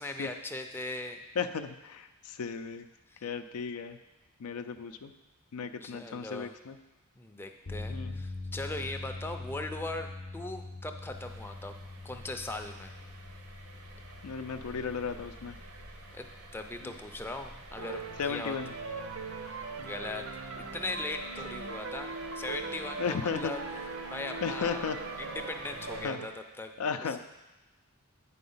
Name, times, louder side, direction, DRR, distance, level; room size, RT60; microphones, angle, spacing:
voice 1, 0.0-1.2 3.1-3.2 5.8-6.5 7.2-11.7 12.0-12.9 16.1-16.3 16.5-18.6 19.8-20.3 20.6-23.6 24.1-26.7 27.0-27.2, left 2 dB, 10° left, 5 dB, 0.4 m, -39 dB
voice 2, 1.4-2.9 3.2-4.0 4.4-5.1 5.5-6.8 7.9-8.2 14.2-15.6 16.8-16.9 18.2-18.7 23.0-23.5 24.4-25.0 26.0-26.2 26.8-27.2, left 6 dB, 90° left, 9 dB, 0.4 m, -35 dB
sound 1, 7.6-21.9, left 2 dB, 50° left, 0.7 m, -45 dB
sound 2, 11.1-26.0, right 2 dB, 80° right, 1.0 m, -49 dB
sound 3, 17.8-26.3, right 4 dB, 65° right, 0.6 m, -40 dB
8.5 x 4.2 x 5.5 m, 1.1 s
head